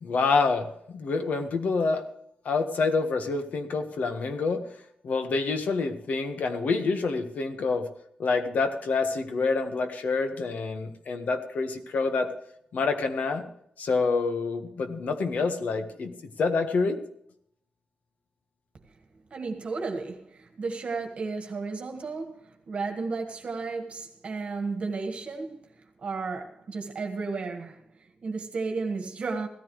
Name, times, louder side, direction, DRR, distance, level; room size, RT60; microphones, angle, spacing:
voice 1, 0.0-2.0 2.4-4.6 5.0-7.9 8.2-12.3 12.7-13.4 13.8-17.0, left 4 dB, 75° left, 1.5 m, -27 dB
voice 2, 19.3-29.5, right 4 dB, 50° right, 1.8 m, -33 dB
16.5 x 14.0 x 3.3 m
wide cardioid pair, 140°, 3 cm